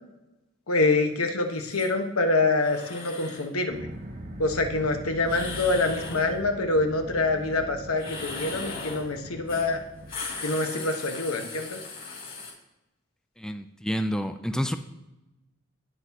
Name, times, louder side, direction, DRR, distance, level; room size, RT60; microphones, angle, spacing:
voice 1, 0.7-3.9 4.4-9.8 10.4-11.8, left 2 dB, 90° left, 4 dB, 1.3 m, -26 dB
sound 1, 1.6-1.9 2.6-3.5 5.2-6.3 7.9-9.1 9.5-9.7 10.0-12.5, left 4 dB, 40° left, 2.5 m, -38 dB
sound 2, 3.7-10.2, right 1 dB, 40° right, 1.0 m, -42 dB
voice 2, 13.4-14.7, equal, 5° left, 8 dB, 0.4 m, -29 dB
17.5 x 6.1 x 2.9 m, 0.98 s
head